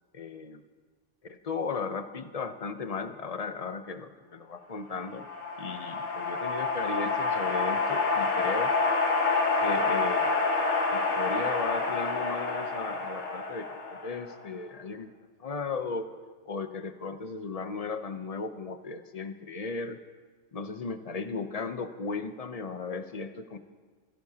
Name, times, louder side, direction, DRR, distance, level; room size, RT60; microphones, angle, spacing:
voice 1, 0.1-0.6 1.3-5.2 5.6-8.7 9.6-10.4 10.9-13.7 14.0-15.1 15.4-16.1 16.5-20.0 20.5-23.6, left 4 dB, 35° left, 9 dB, 0.7 m, -36 dB
sound 1, 4.9-14.5, left 3 dB, 55° left, 1.6 m, -28 dB
26.0 x 15.5 x 2.9 m, 1.5 s
omnidirectional pair, 1.4 m